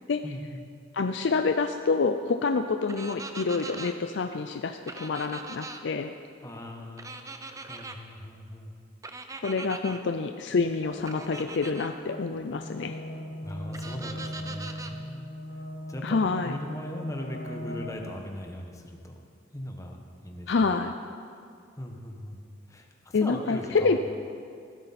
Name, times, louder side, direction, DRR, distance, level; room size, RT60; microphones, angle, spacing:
voice 1, 0.2-0.6 6.4-8.7 13.4-15.3 15.9-16.2 16.4-19.1 19.5-19.9 20.2-20.5 21.8-22.4 22.7-24.0, left 1 dB, 15° left, 2 dB, 1.2 m, -39 dB
voice 2, 0.9-6.1 9.4-13.0 16.0-16.6 20.5-20.9 23.1-24.0, left 4 dB, 65° left, 7 dB, 0.4 m, -27 dB
sound 1, 2.9-3.9 4.9-5.8 7.0-8.0 9.0-10.0 11.1-11.9 13.7-14.9, right 3 dB, 15° right, 0.6 m, -41 dB
sound 2, 10.5-18.2, equal, 45° left, 0.9 m, -39 dB
16.0 x 13.0 x 4.2 m, 2.3 s
head